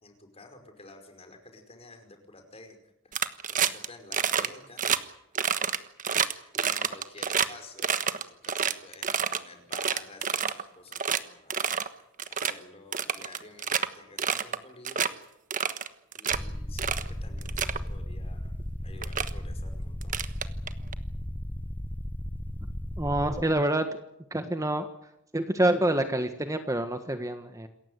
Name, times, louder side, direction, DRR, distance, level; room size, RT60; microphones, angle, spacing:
voice 1, 0.0-2.8 3.0-3.2 3.5-4.9 6.2-11.6 12.3-15.1 16.2-18.5 18.8-20.2, left 3 dB, 30° left, 5 dB, 5.2 m, -50 dB
sound 1, 3.1-3.9 4.1-4.5 4.8-5.0 5.3-7.5 7.8-9.4 9.7-10.6 10.9-11.2 11.5-11.9 12.2-12.5 12.9-13.9 14.2-14.6 14.8-15.1 15.5-16.4 16.8-17.1 17.4-17.8 18.6-18.7 19.0-19.3 20.0-20.9, right 7 dB, 40° right, 1.3 m, -28 dB
sound 2, 16.3-23.4, left 1 dB, 10° left, 0.8 m, -35 dB
voice 2, 23.0-23.8 24.3-24.9 25.3-27.7, right 1 dB, 15° right, 8 dB, 1.4 m, -27 dB
27.5 x 15.0 x 9.5 m, 0.83 s
head